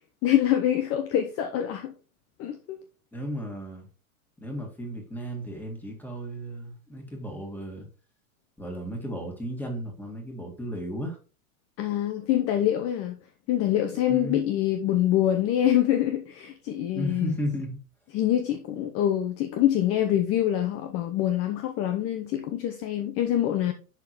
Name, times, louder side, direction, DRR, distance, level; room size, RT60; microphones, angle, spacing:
voice 1, 0.2-1.9 2.4-2.8 11.8-13.2 13.5-17.3 18.1-23.7, left 12 dB, 35° left, 0.7 m, -25 dB
voice 2, 3.1-3.9 4.4-7.9 8.6-11.2 14.1-14.4 16.9-17.8, equal, 5° left, 1.9 m, -34 dB
11.0 x 3.8 x 3.0 m
hypercardioid pair, 120°, 43 cm